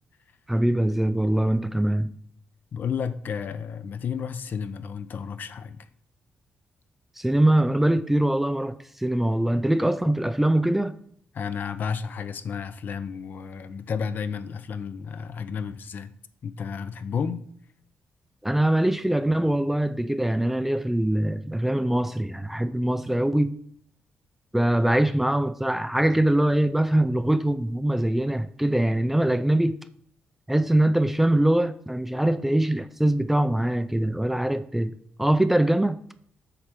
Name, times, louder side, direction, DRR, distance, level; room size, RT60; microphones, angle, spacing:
voice 1, 0.5-2.1 7.2-10.9 18.4-23.5 24.5-29.8 30.5-36.0, right 1 dB, 5° right, 0.3 m, -23 dB
voice 2, 2.7-5.9 11.3-16.1 16.4-17.5, left 6 dB, 55° left, 0.5 m, -32 dB
8.0 x 3.3 x 5.8 m
cardioid pair, 125°, 4 cm